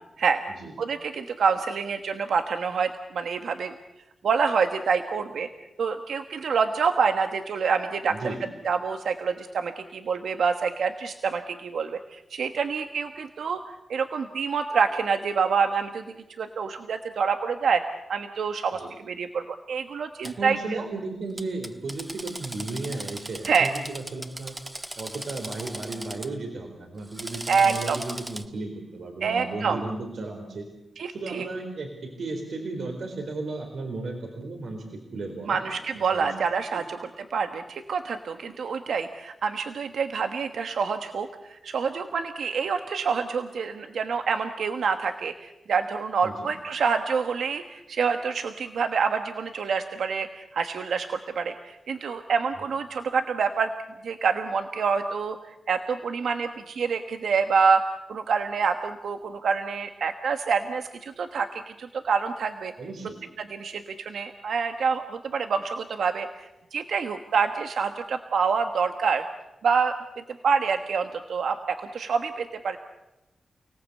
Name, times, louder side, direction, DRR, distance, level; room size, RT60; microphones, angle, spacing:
voice 1, 0.8-3.7 4.2-5.5 5.8-8.3 8.6-13.6 13.9-16.0 16.4-18.8 19.1-20.8 23.5-23.7 27.5-28.0 29.2-29.8 31.0-31.5 35.5-53.7 54.0-57.8 58.1-62.7 63.5-69.2 69.6-69.9 70.4-72.8, right 5 dB, 90° right, 7 dB, 1.3 m, -27 dB
voice 2, 8.1-8.4 18.7-18.9 20.2-30.7 31.1-35.6 35.9-36.3 36.7-36.9 46.2-46.5 52.6-52.7 62.8-63.2, right 3 dB, 70° right, 2 dB, 4.2 m, -35 dB
Drill, 20.2-20.3 21.4-26.3 27.0-28.4, right 1 dB, 15° right, 1.2 m, -38 dB
30.0 x 18.5 x 8.4 m, 0.98 s
wide cardioid pair, 115°, 0 cm